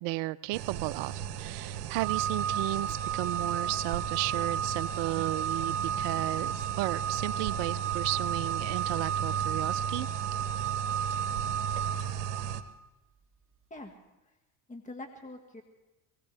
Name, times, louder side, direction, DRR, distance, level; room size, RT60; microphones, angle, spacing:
voice 1, 0.0-10.1, right 19 dB, 65° right, 16 dB, 0.6 m, -34 dB
sound 1, 0.5-12.6, right 9 dB, 85° right, 0.9 m, -36 dB
Organ, 2.0-12.8, right 8 dB, 25° right, 1.5 m, -33 dB
voice 2, 14.7-15.6, left 2 dB, 15° left, 4 dB, 1.8 m, -44 dB
23.0 x 17.5 x 3.5 m, 1.0 s
hypercardioid pair, 70°, 46 cm